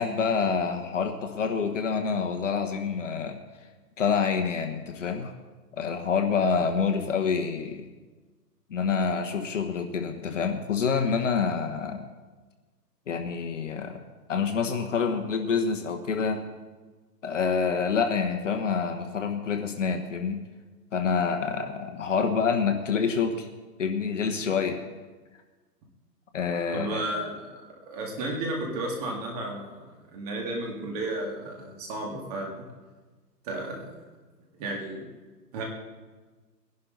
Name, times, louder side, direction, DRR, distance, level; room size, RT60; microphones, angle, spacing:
voice 1, 0.0-3.4 4.0-5.3 5.8-7.9 8.7-12.1 13.1-14.0 14.3-16.4 17.2-20.4 20.9-23.5 23.8-24.8 26.3-27.0, left 5 dB, 50° left, 5 dB, 1.3 m, -27 dB
voice 2, 26.7-32.6 33.4-33.9 34.6-35.1 35.5-35.6, right 2 dB, 25° right, 0 dB, 2.2 m, -33 dB
20.5 x 11.0 x 4.0 m, 1.3 s
hypercardioid pair, 160°, 49 cm